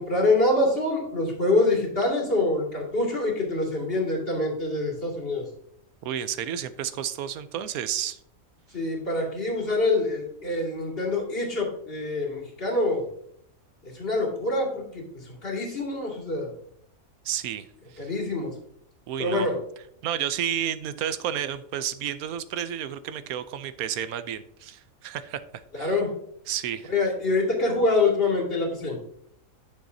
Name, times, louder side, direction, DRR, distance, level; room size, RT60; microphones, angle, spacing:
voice 1, 0.0-5.4 8.7-13.1 13.9-16.5 18.0-18.5 19.2-19.6 25.7-26.1 26.9-29.0, left 2 dB, 40° left, -2 dB, 2.3 m, -25 dB
voice 2, 6.0-8.2 17.2-17.7 17.9-18.1 19.1-19.5 20.0-25.4 25.8-26.0 26.5-26.9, right 10 dB, 90° right, 13 dB, 1.1 m, -31 dB
9.5 x 6.8 x 2.7 m, 0.69 s
omnidirectional pair, 1.5 m